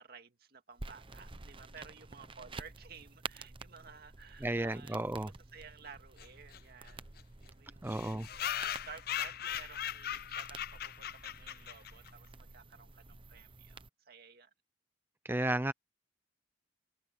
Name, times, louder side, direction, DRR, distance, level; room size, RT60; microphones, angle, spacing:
voice 1, 0.0-5.0 5.5-8.1 8.3-14.5, right 5 dB, 60° right, 2.1 m, -54 dB
sound 1, 0.8-13.9, right 3 dB, 30° right, 0.9 m, -50 dB
voice 2, 4.4-5.3 7.8-8.6 15.2-15.7, right 1 dB, 10° right, 0.5 m, -34 dB
sound 2, 6.2-6.3 6.5-6.6 6.9-7.0 7.2-7.3 7.9-12.1, left 10 dB, 60° left, 0.6 m, -39 dB
head